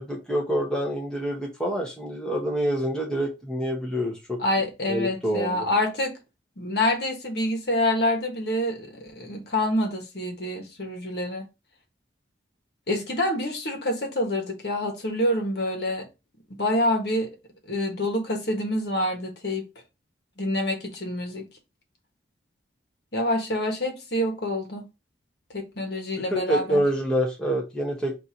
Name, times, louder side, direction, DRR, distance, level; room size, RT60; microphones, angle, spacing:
voice 1, 0.0-4.4 4.9-5.7 26.3-28.2, equal, 5° left, 1.0 m, -27 dB
voice 2, 4.4-6.1 6.6-11.4 12.9-16.1 16.6-17.3 17.7-19.6 20.4-21.4 23.1-24.8 25.5-26.8, left 1 dB, 60° left, 1.3 m, -27 dB
4.4 x 2.7 x 4.5 m
head